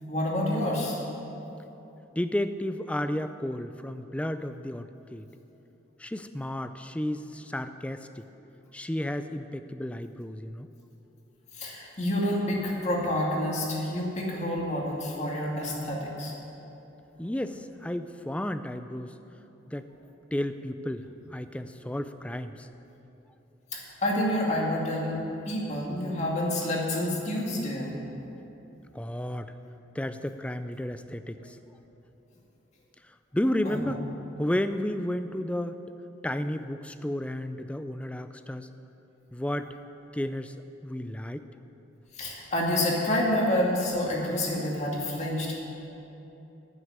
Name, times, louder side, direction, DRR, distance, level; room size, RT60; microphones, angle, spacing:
voice 1, 0.1-1.0 11.5-16.3 23.7-27.9 33.6-33.8 42.1-45.6, left 1 dB, 35° left, -3 dB, 2.3 m, -28 dB
voice 2, 2.2-5.2 6.0-8.2 8.7-10.7 17.2-19.2 19.7-19.9 20.3-22.7 28.9-29.5 29.9-31.6 33.3-34.0 34.4-35.8 36.2-38.7 39.3-39.7 40.1-40.5 40.8-41.5, left 1 dB, 5° left, 10 dB, 0.4 m, -32 dB
9.4 x 9.1 x 9.7 m, 3.0 s
head